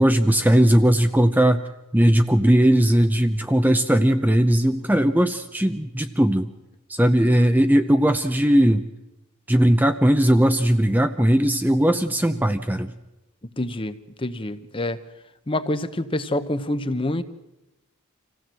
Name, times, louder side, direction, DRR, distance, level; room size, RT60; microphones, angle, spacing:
voice 1, 0.0-1.6 1.9-6.5 6.9-8.8 9.5-12.9, right 1 dB, 10° right, 8 dB, 0.6 m, -18 dB
voice 2, 7.0-7.4 13.6-15.0 15.5-17.2, left 1 dB, 25° left, 12 dB, 0.9 m, -27 dB
26.0 x 16.0 x 7.6 m, 0.99 s
head